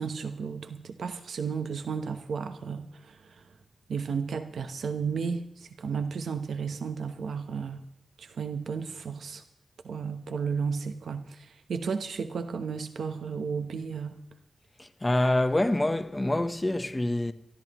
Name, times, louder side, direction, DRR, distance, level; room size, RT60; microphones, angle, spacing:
voice 1, 0.0-3.5 3.9-7.8 8.2-9.4 9.8-14.2, right 5 dB, 90° right, 0.9 m, -33 dB
voice 2, 15.0-17.3, left 1 dB, 15° left, 0.9 m, -26 dB
24.5 x 13.5 x 3.0 m
wide cardioid pair, 145°, 0 cm